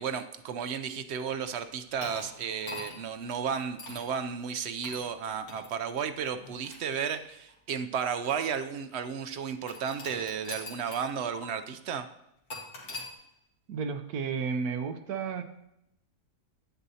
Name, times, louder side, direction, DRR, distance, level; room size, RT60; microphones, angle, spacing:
voice 1, 0.0-12.1, right 7 dB, 65° right, 10 dB, 0.7 m, -33 dB
sound 1, 2.0-3.1 3.8-4.1 4.8-5.1 5.5-5.7 6.4-7.5 8.3-8.4 9.7-11.1 11.3-11.4 12.5-13.1, left 2 dB, 85° left, 2.1 m, -42 dB
voice 2, 13.7-15.4, right 5 dB, 90° right, 8 dB, 1.3 m, -32 dB
9.8 x 9.1 x 2.8 m, 0.81 s
omnidirectional pair, 1.5 m